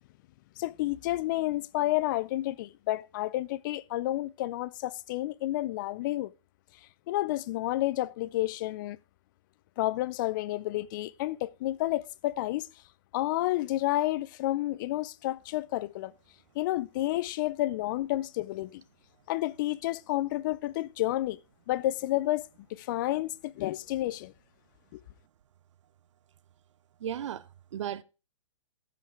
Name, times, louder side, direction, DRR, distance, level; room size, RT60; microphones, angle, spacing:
voice 1, 0.6-6.3 7.1-9.0 9.8-12.7 13.1-16.1 16.6-18.8 19.3-21.4 21.7-22.4 22.7-24.3 24.9-25.0, left 16 dB, 40° left, 0.4 m, -30 dB
voice 2, 27.0-28.0, right 9 dB, 70° right, 0.6 m, -35 dB
14.0 x 5.2 x 4.5 m
hypercardioid pair, 135°, 16 cm